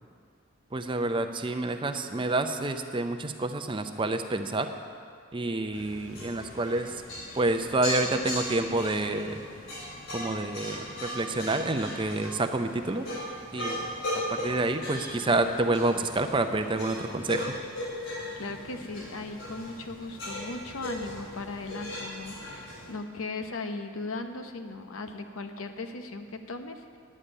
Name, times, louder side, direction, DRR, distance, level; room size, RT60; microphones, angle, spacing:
voice 1, 0.7-4.7 5.3-7.0 7.3-9.4 10.1-13.1 13.5-13.9 14.3-17.6, right 2 dB, 25° right, 7 dB, 0.5 m, -28 dB
sound 1, 5.7-22.9, left 1 dB, 70° left, 3.5 m, -38 dB
voice 2, 18.4-22.6 22.9-27.0, left 3 dB, 90° left, 6 dB, 0.8 m, -37 dB
9.7 x 7.1 x 8.9 m, 2.3 s
head